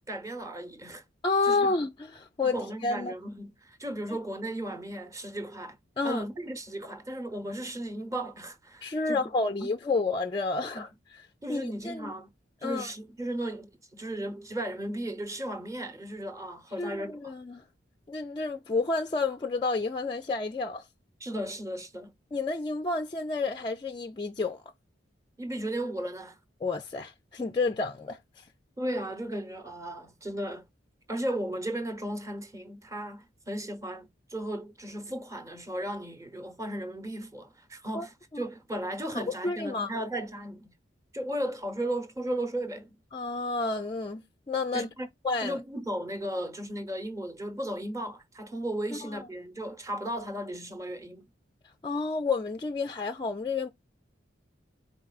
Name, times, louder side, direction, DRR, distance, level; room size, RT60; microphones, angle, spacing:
voice 1, 0.1-1.0 1.4-1.6 2.4-5.8 6.0-9.2 9.6-9.7 10.7-10.8 11.4-12.3 12.6-17.3 21.2-22.1 25.4-26.4 28.8-30.6 31.1-40.7 41.1-43.0 44.7-45.1 45.4-51.3, right 1 dB, 15° right, 0.9 m, -35 dB
voice 2, 1.2-3.1 6.0-6.2 8.8-12.1 12.6-12.9 16.8-17.6 18.1-20.8 22.3-24.6 26.6-28.4 37.9-38.1 38.3-38.4 39.1-39.9 43.1-44.9 45.2-45.6 48.9-49.2 51.8-53.7, left 3 dB, 25° left, 0.3 m, -30 dB
4.7 x 3.9 x 2.3 m
head